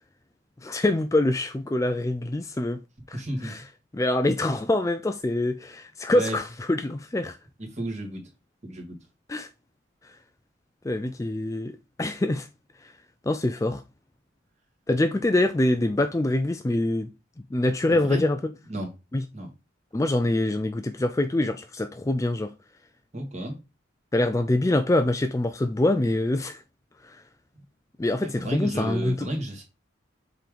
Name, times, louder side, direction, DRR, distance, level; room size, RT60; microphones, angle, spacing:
voice 1, 0.6-2.8 3.1-3.6 3.9-7.4 9.3-9.5 10.8-12.5 12.8-12.9 13.3-13.8 14.9-17.1 17.5-18.4 19.1-19.2 19.9-22.5 24.1-26.6 27.0-27.2 28.0-29.3, left 1 dB, 15° left, 0.3 m, -25 dB
voice 2, 3.1-3.5 6.1-6.4 7.6-8.3 8.6-9.0 17.9-18.2 18.7-18.9 19.3-19.5 23.1-23.6 28.2-29.6, right 1 dB, 35° right, 2.2 m, -32 dB
7.4 x 3.8 x 5.0 m
head